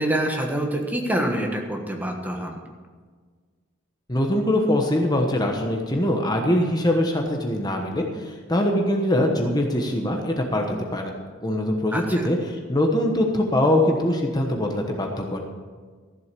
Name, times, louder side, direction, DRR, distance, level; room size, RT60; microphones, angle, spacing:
voice 1, 0.0-2.6 11.9-12.3, right 1 dB, 10° right, 2 dB, 1.3 m, -26 dB
voice 2, 4.1-11.1 11.4-15.4, left 1 dB, 20° left, 2 dB, 1.1 m, -23 dB
14.0 x 7.8 x 6.8 m, 1.5 s
head